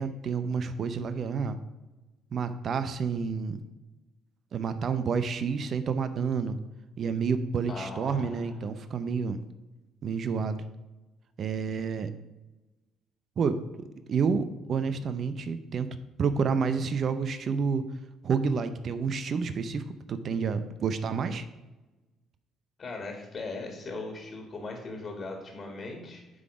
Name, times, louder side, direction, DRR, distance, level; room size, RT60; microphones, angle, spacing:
voice 1, 0.0-1.6 2.3-3.6 4.5-6.6 7.0-9.4 10.0-10.6 11.4-12.1 13.4-13.6 14.1-17.9 18.2-21.4, right 5 dB, 55° right, 11 dB, 0.6 m, -29 dB
voice 2, 7.7-8.5 22.8-26.2, left 3 dB, 45° left, 2 dB, 1.8 m, -39 dB
9.5 x 3.9 x 4.9 m, 1.1 s
hypercardioid pair, 55°, 0 cm